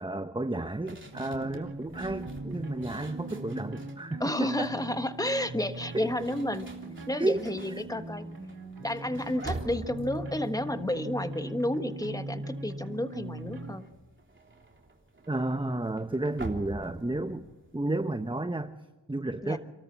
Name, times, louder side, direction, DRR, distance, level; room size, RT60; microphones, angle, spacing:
voice 1, 0.0-4.7 5.9-6.1 7.2-7.4 15.3-18.7 19.1-19.6, right 2 dB, 10° right, 8 dB, 1.0 m, -32 dB
sound 1, 0.8-4.0 4.4-4.9 5.8-12.0 12.3-12.7 12.9-18.4, right 2 dB, 25° right, 3.3 m, -45 dB
sound 2, 1.1-13.7, right 2 dB, 55° right, 4.4 m, -40 dB
voice 2, 4.2-6.7 7.1-8.3 8.8-13.8 19.4-19.6, left 1 dB, 10° left, 9 dB, 1.4 m, -31 dB
27.5 x 13.5 x 7.4 m, 1.2 s
cardioid pair, 45°, 43 cm